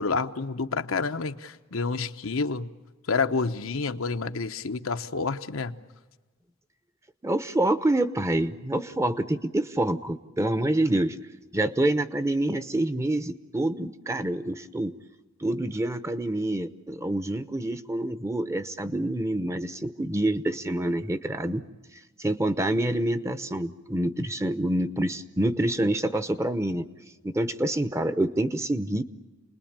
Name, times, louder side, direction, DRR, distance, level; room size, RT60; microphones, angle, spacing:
voice 1, 0.0-2.7 3.1-5.8, left 4 dB, 90° left, 7 dB, 1.0 m, -29 dB
voice 2, 7.2-11.2 11.5-14.9 15.4-21.6 22.2-26.9 27.2-29.0, right 1 dB, 15° right, 12 dB, 0.8 m, -27 dB
29.0 x 20.5 x 8.8 m, 1.2 s
head